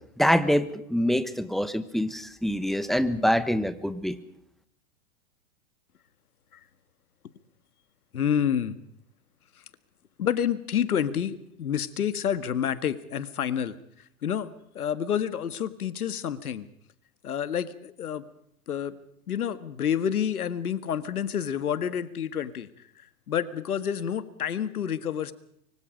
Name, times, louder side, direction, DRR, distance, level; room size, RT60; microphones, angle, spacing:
voice 1, 0.2-4.2, equal, ahead, 13 dB, 1.2 m, -25 dB
voice 2, 8.1-8.8 10.2-13.8 14.2-14.5 14.8-16.7 17.2-18.3 18.7-19.0 19.3-22.7 23.3-25.3, left 8 dB, 90° left, 14 dB, 1.9 m, -28 dB
25.0 x 24.0 x 5.2 m, 0.71 s
hypercardioid pair, 130°, 43 cm